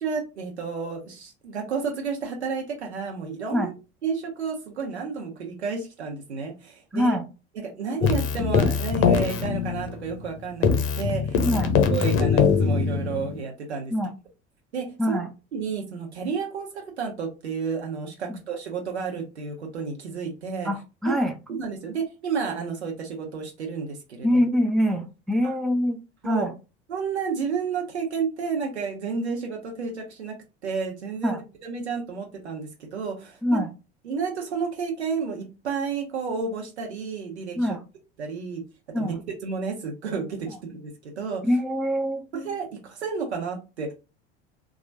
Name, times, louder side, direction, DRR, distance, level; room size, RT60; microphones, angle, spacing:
voice 1, 0.0-3.7 4.0-7.2 7.5-10.7 11.0-11.6 11.9-13.9 14.7-15.2 15.5-20.7 21.0-21.1 21.5-24.4 26.2-26.5 26.9-30.4 30.6-33.6 34.0-37.6 38.2-38.6 39.0-41.4 42.3-43.9, right 5 dB, 80° right, 2 dB, 1.0 m, -31 dB
voice 2, 6.9-7.2 11.4-11.7 13.9-14.2 15.0-15.3 18.3-18.4 20.6-21.3 24.2-26.5 31.2-31.4 33.4-33.7 37.6-37.8 38.9-39.2 41.4-42.2, equal, ahead, 5 dB, 0.4 m, -24 dB
Keyboard (musical), 8.0-10.3 10.6-13.4, left 6 dB, 40° left, 0.8 m, -22 dB
4.0 x 2.4 x 2.6 m, 0.29 s
figure-of-eight pair, 70°, 33 cm